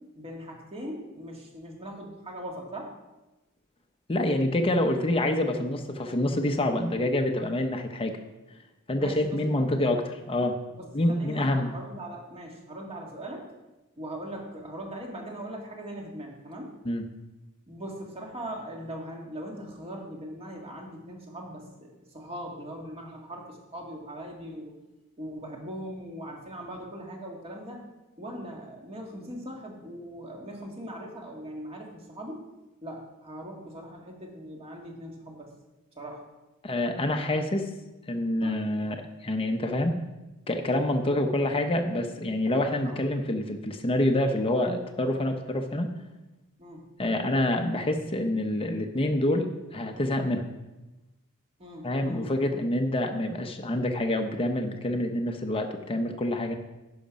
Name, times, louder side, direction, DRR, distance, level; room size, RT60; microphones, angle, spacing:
voice 1, 0.0-2.9 9.0-9.9 10.7-13.5 14.0-16.8 17.7-24.7 25.2-27.8 28.2-32.5 32.8-35.5 35.9-36.2 38.4-38.6 42.8-43.0 46.6-46.9 51.6-52.3, right 1 dB, 25° right, 0 dB, 1.8 m, -40 dB
voice 2, 4.1-8.1 8.9-10.6 10.9-11.7 16.9-17.0 36.6-37.7 38.1-39.9 40.5-45.9 47.0-50.4 51.8-56.5, left 1 dB, 25° left, 4 dB, 0.7 m, -27 dB
10.5 x 5.8 x 5.1 m, 1.0 s
head